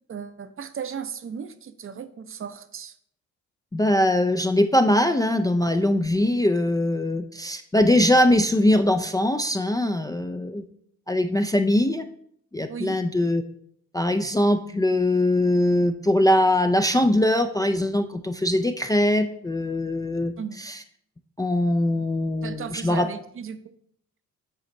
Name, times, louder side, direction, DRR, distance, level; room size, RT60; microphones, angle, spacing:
voice 1, 0.1-2.9 12.7-13.0 20.4-20.6 22.4-23.6, right 7 dB, 35° right, 12 dB, 0.6 m, -35 dB
voice 2, 3.7-10.6 11.1-12.0 12.5-13.4 13.9-20.3 20.6-20.8 21.4-23.1, left 1 dB, 10° left, 7 dB, 0.4 m, -21 dB
7.7 x 4.1 x 3.0 m, 0.68 s
hypercardioid pair, 45°, 37 cm